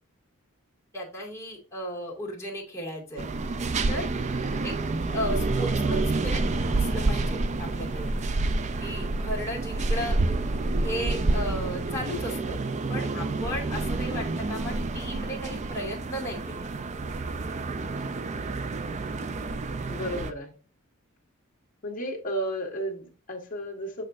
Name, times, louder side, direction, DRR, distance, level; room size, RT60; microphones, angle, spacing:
voice 1, 0.9-3.2 3.9-4.1 4.6-4.8 5.1-6.4 6.7-8.1 8.8-10.2 10.8-12.6 12.9-16.7, left 1 dB, 15° left, -4 dB, 2.2 m, -35 dB
sound 1, 3.2-20.3, right 3 dB, 30° right, 0.4 m, -28 dB
voice 2, 19.9-20.5 21.8-24.0, equal, 40° left, 0 dB, 1.6 m, -33 dB
6.6 x 6.4 x 2.6 m, 0.36 s
head